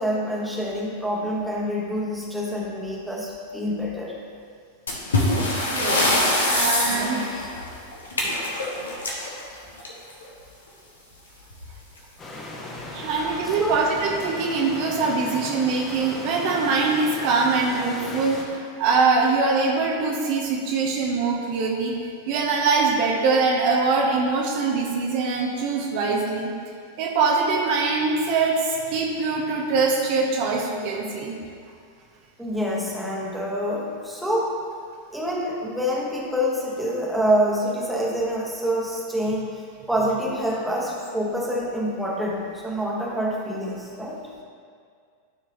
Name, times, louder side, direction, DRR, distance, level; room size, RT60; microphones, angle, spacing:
voice 1, 0.0-4.1 6.8-7.5 13.1-13.9 32.4-34.6 35.1-39.6 39.9-44.2, equal, 5° right, -4 dB, 1.3 m, -27 dB
sound 1, 4.9-10.2 11.5-11.7 12.0-12.1 12.7-12.8 13.5-13.8, left 2 dB, 70° left, 1.3 m, -24 dB
voice 2, 6.5-7.2 12.9-21.9 22.3-26.5 27.0-31.3, right 4 dB, 45° right, -2 dB, 0.9 m, -23 dB
sound 2, 12.2-18.4, left 2 dB, 25° left, 1.3 m, -36 dB
12.5 x 4.7 x 3.0 m, 2.2 s
figure-of-eight pair, 90°, 0 cm